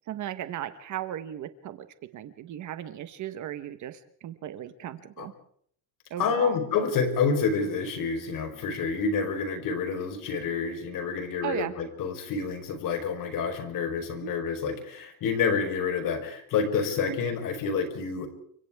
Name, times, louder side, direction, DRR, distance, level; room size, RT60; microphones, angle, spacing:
voice 1, 0.1-1.9 2.1-5.3 6.1-6.6 11.4-11.7 14.2-14.3 17.1-17.2, right 11 dB, 40° right, 11 dB, 1.2 m, -36 dB
voice 2, 6.2-18.3, left 5 dB, 45° left, 6 dB, 4.3 m, -28 dB
30.0 x 25.5 x 3.6 m, 0.62 s
cardioid pair, 165°, 44 cm